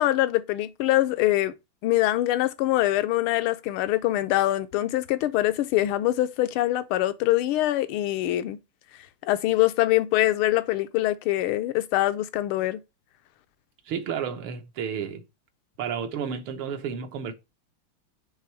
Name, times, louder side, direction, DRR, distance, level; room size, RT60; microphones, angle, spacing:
voice 1, 0.0-1.5 1.8-8.6 9.3-12.8, left 15 dB, 80° left, 1.5 m, -24 dB
voice 2, 13.9-15.2 15.8-17.3, right 7 dB, 80° right, 1.8 m, -31 dB
7.4 x 3.4 x 4.5 m
omnidirectional pair, 2.3 m